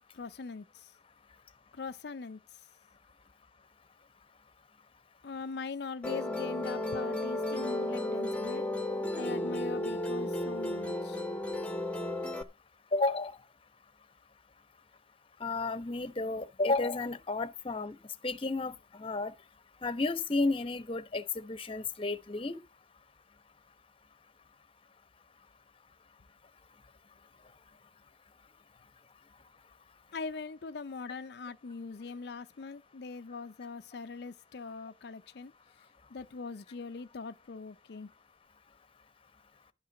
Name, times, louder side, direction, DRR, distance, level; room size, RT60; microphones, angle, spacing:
voice 1, 0.1-0.9 1.7-2.6 5.2-8.6 9.2-11.2 30.1-35.5 36.1-38.1, left 4 dB, 60° left, 0.5 m, -41 dB
Musical instrument, 6.0-12.4, left 1 dB, 5° left, 1.0 m, -33 dB
voice 2, 12.9-13.3 15.4-17.9 18.2-19.3 19.8-22.6, left 3 dB, 30° left, 0.9 m, -32 dB
11.5 x 5.7 x 7.3 m
head